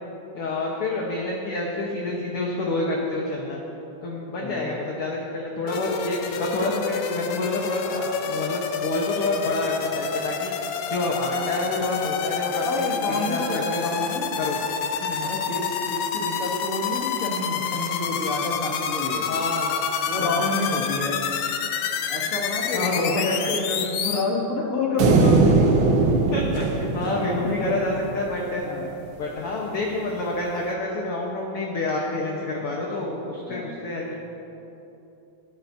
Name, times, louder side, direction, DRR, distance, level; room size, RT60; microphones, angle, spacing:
voice 1, 0.3-3.6 4.0-10.5 10.9-14.6 15.0-15.3 19.3-19.9 20.2-20.5 22.7-23.8 26.3-28.7 29.2-34.2, left 2 dB, 55° left, -2 dB, 1.9 m, -28 dB
voice 2, 4.4-4.7 12.6-14.3 15.2-19.3 20.1-21.2 22.1-25.5 27.0-27.8 28.6-28.9 33.5-33.7, left 2 dB, 30° left, -5 dB, 2.3 m, -29 dB
sound 1, 5.7-24.2, left 7 dB, 80° left, 2.1 m, -28 dB
sound 2, 25.0-28.4, right 3 dB, 70° right, 1.2 m, -20 dB
21.5 x 13.0 x 2.8 m, 3.0 s
omnidirectional pair, 3.4 m